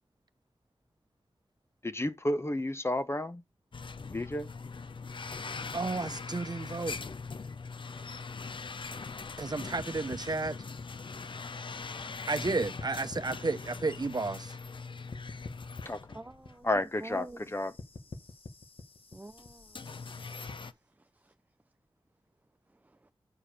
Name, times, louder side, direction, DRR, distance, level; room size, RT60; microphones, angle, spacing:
voice 1, 1.8-3.4 4.1-4.5 15.9-16.0 16.6-17.7, left 1 dB, 30° left, 0.8 m, -31 dB
sound 1, 3.7-16.8 17.2-17.3 18.1-18.2 19.3-20.7, left 4 dB, 60° left, 0.6 m, -41 dB
voice 2, 5.7-7.0 9.4-10.6 12.3-14.5, right 3 dB, 50° right, 0.8 m, -32 dB
sound 2, 9.8-12.1 12.4-14.8 15.1-20.5, left 3 dB, 90° left, 1.4 m, -47 dB
voice 3, 16.1-16.7 17.0-17.5 19.1-19.9 21.2-21.3 22.8-23.1, right 2 dB, 20° right, 0.4 m, -47 dB
8.8 x 4.8 x 4.9 m
wide cardioid pair, 60°, 9 cm